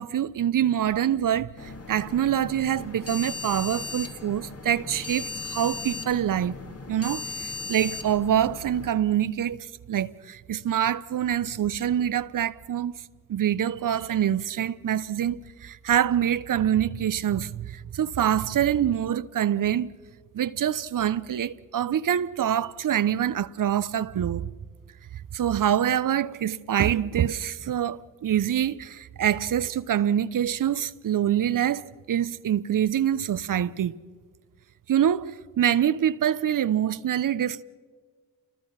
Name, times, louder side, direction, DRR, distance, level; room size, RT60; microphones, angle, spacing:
voice 1, 0.0-6.6 6.9-12.9 13.3-19.9 20.3-24.5 25.3-34.0 34.9-37.6, right 10 dB, 55° right, 0.8 m, -25 dB
sound 1, 1.6-8.9, left 4 dB, 40° left, 2.2 m, -37 dB
28.0 x 20.0 x 5.8 m
supercardioid pair, 45°, 39 cm